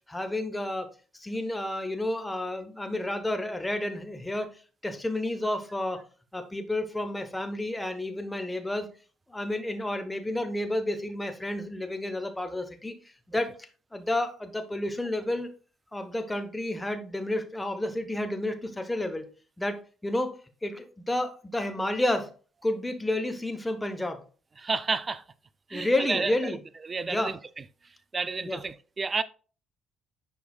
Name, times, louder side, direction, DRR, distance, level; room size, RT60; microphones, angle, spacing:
voice 1, 0.1-4.5 4.8-6.0 6.3-8.9 9.3-12.9 13.3-13.5 13.9-15.5 15.9-19.3 19.6-22.3 22.6-24.2 25.7-26.6 27.1-27.3 28.4-28.6, left 1 dB, 10° left, 1.3 m, -30 dB
voice 2, 24.6-25.2 25.7-26.3 26.9-27.4 28.1-29.2, right 4 dB, 30° right, 0.5 m, -30 dB
10.5 x 4.7 x 2.5 m
figure-of-eight pair, 45°, 0 cm